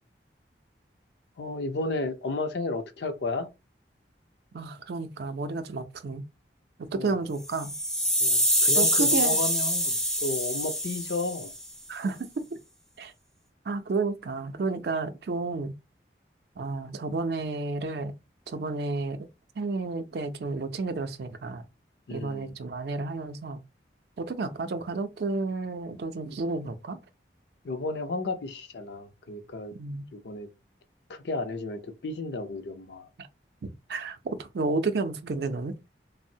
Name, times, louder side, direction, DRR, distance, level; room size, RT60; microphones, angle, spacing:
voice 1, 1.4-3.5 6.9-7.2 8.2-11.5 22.1-22.6 27.6-29.7 30.1-30.5 31.1-33.1, left 2 dB, 75° left, 0.5 m, -33 dB
voice 2, 4.5-6.2 6.9-7.7 8.8-9.4 11.9-12.4 13.0-13.1 13.7-15.7 16.6-18.1 18.5-19.3 19.6-21.6 22.1-23.6 24.2-27.0 29.7-30.1 33.6-35.8, right 3 dB, 65° right, 0.4 m, -31 dB
sound 1, 7.4-11.6, equal, 5° left, 0.4 m, -25 dB
3.2 x 2.0 x 2.6 m
head